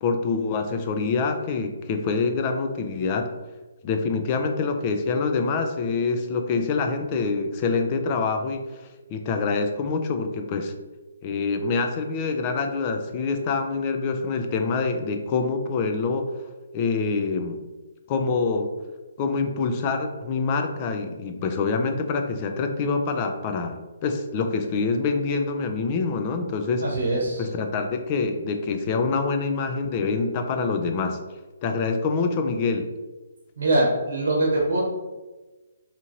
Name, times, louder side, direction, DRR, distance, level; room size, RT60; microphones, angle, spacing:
voice 1, 0.0-3.3 3.8-8.6 9.1-10.7 11.2-16.3 16.7-17.6 18.1-18.7 19.2-26.8 27.4-31.2 31.6-32.9, left 4 dB, 30° left, 6 dB, 0.3 m, -25 dB
voice 2, 26.8-27.5 33.6-34.8, right 2 dB, 70° right, -3 dB, 0.8 m, -23 dB
2.8 x 2.5 x 2.9 m, 1.2 s
hypercardioid pair, 150°, 0 cm